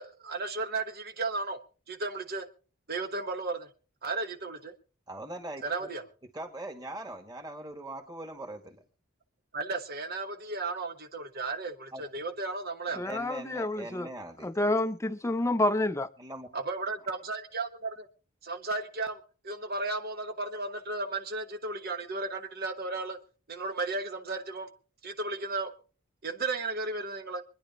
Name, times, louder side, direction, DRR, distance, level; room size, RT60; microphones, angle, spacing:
voice 1, 0.0-1.6 1.9-2.5 2.9-3.7 4.0-4.7 5.6-6.0 9.5-13.0 16.5-18.1 18.4-23.2 23.5-24.7 25.0-25.7 26.2-27.4, right 3 dB, 50° right, 1.2 m, -34 dB
voice 2, 5.1-5.9 6.3-8.8 11.9-12.0 12.9-14.7 16.2-16.5, right 1 dB, 20° right, 2.0 m, -41 dB
voice 3, 13.0-14.1 14.4-16.1, left 1 dB, 15° left, 0.6 m, -28 dB
25.0 x 10.5 x 2.9 m
head